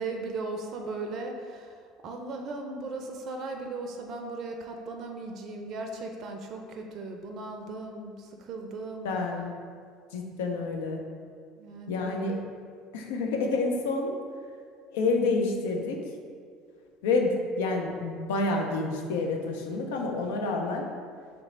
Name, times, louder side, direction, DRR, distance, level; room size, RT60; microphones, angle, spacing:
voice 1, 0.0-1.8 2.0-9.2 11.6-12.4, right 3 dB, 50° right, 3 dB, 0.4 m, -37 dB
voice 2, 9.0-9.5 10.1-11.0 11.9-12.4 12.9-14.1 14.9-16.0 17.0-20.8, left 3 dB, 75° left, 2 dB, 0.5 m, -28 dB
3.4 x 3.1 x 3.7 m, 2.1 s
hypercardioid pair, 70°, 0 cm